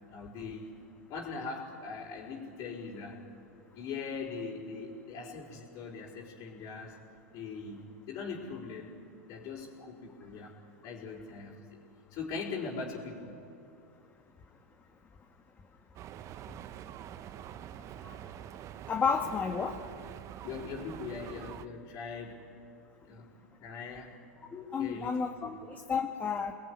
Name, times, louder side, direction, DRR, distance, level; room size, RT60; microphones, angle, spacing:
voice 1, 0.1-0.7 1.1-3.2 3.7-7.0 7.3-10.6 10.8-11.5 12.1-13.3 20.4-22.4 23.1-23.3 23.6-24.1 24.8-25.6, left 4 dB, 45° left, -5 dB, 5.0 m, -41 dB
sound 1, 15.9-21.7, right 11 dB, 40° right, 1.0 m, -45 dB
voice 2, 18.9-19.7 24.5-26.5, left 6 dB, 20° left, 3 dB, 1.9 m, -31 dB
28.5 x 20.5 x 9.9 m, 2.5 s
hypercardioid pair, 100°, 8 cm